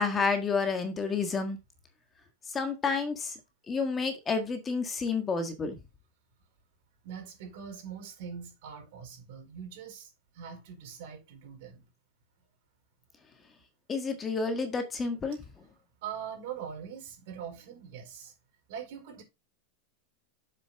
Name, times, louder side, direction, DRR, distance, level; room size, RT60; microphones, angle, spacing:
voice 1, 0.0-1.6 2.5-3.4 3.7-5.8 13.9-15.4, left 4 dB, 20° left, 1.6 m, -30 dB
voice 2, 7.0-10.1 10.3-11.8 16.0-18.3 18.7-19.2, right 7 dB, 65° right, 4.6 m, -42 dB
7.6 x 7.0 x 3.6 m
supercardioid pair, 145°, 0 cm